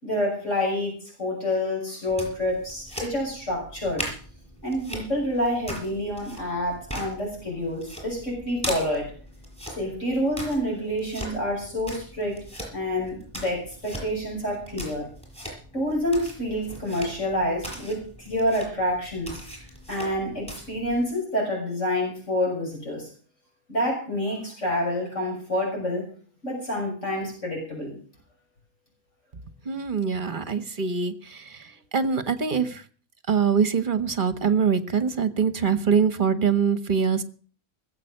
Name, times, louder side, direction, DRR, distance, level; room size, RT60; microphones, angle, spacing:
voice 1, 0.0-0.9 1.2-4.1 4.6-9.1 9.8-12.4 12.7-15.1 15.7-19.4 19.9-23.1 23.7-26.0 26.4-28.0, left 1 dB, 55° left, -2 dB, 6.7 m, -28 dB
sound 1, 2.1-21.0, equal, 5° left, 6.5 m, -40 dB
voice 2, 29.6-32.8 33.3-37.2, right 6 dB, 35° right, 13 dB, 1.4 m, -24 dB
19.5 x 8.1 x 6.6 m, 0.43 s
omnidirectional pair, 1.5 m